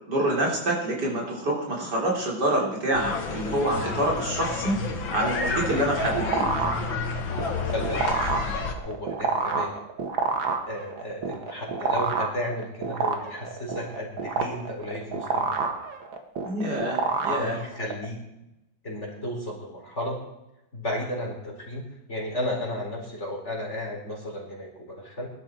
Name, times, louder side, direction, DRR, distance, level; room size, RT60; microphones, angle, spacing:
voice 1, 0.1-4.8 5.1-6.5 16.4-17.6, right 1 dB, 55° right, -2 dB, 4.2 m, -26 dB
sound 1, 2.9-8.7, left 4 dB, 70° left, 2.5 m, -30 dB
sound 2, 5.6-18.0, right 4 dB, 80° right, 2.4 m, -29 dB
voice 2, 7.7-8.4 8.8-9.7 10.7-15.8 17.3-18.2 18.8-20.2 20.7-21.8 22.1-25.3, left 1 dB, 35° left, -1 dB, 4.5 m, -33 dB
21.5 x 12.5 x 4.5 m, 0.90 s
omnidirectional pair, 2.1 m